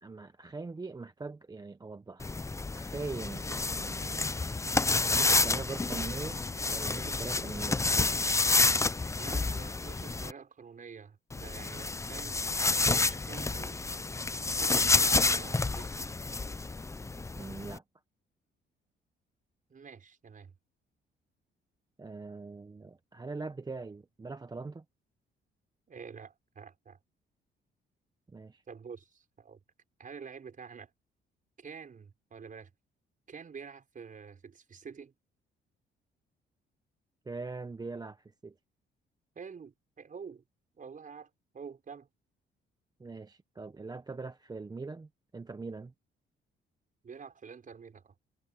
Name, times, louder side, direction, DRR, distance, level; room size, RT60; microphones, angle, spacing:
voice 1, 0.0-2.4 2.8-4.5 4.9-6.4 6.7-7.8 17.4-17.8 22.0-24.8 28.3-28.6 37.3-38.5 43.0-45.9, right 3 dB, 20° right, 0.8 m, -42 dB
sound 1, 2.2-10.3 11.3-17.8, left 3 dB, 15° left, 0.6 m, -29 dB
voice 2, 9.1-12.4 12.9-13.8 14.5-16.2 19.7-20.5 25.9-27.0 28.7-29.6 30.0-30.9 31.6-32.7 33.3-35.1 39.4-40.4 40.7-42.1 47.0-48.2, right 6 dB, 40° right, 5.5 m, -47 dB
cardioid pair, 90°, 20 cm